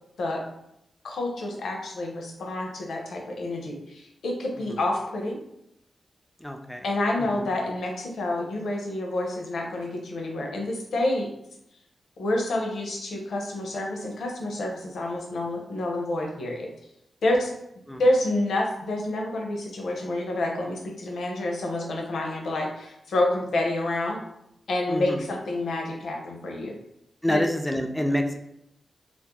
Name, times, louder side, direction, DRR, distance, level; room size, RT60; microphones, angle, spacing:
voice 1, 1.0-5.4 6.8-11.3 12.2-16.7 17.2-17.5 18.0-24.2 24.7-26.7 27.3-27.4, left 1 dB, 80° left, 1 dB, 0.5 m, -28 dB
voice 2, 6.4-6.9 7.2-7.5 17.9-18.0 24.9-25.3 27.2-28.4, left 1 dB, 5° left, 4 dB, 0.4 m, -28 dB
2.3 x 2.0 x 2.9 m, 0.79 s
supercardioid pair, 40°, 0 cm